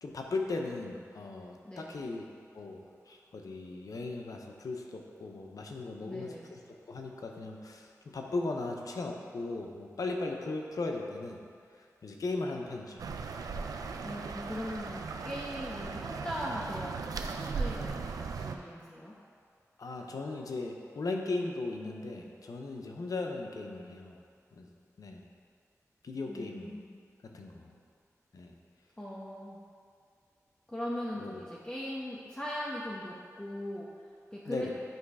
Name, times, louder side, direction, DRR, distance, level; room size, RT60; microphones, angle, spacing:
voice 1, 0.0-2.2 2.5-11.4 12.0-13.0 19.8-24.2 24.5-24.7 25.0-25.2 26.0-26.8 27.2-27.7 28.3-28.5 31.2-31.4 34.5-34.7, left 3 dB, 75° left, 2 dB, 0.7 m, -37 dB
voice 2, 1.6-2.0 6.0-6.5 14.0-19.1 26.3-27.0 29.0-29.6 30.7-34.7, equal, 15° left, -6 dB, 0.9 m, -40 dB
sound 1, 13.0-18.6, right 4 dB, 90° right, 0.3 m, -37 dB
9.0 x 3.1 x 4.8 m, 2.2 s
cardioid pair, 45°, 6 cm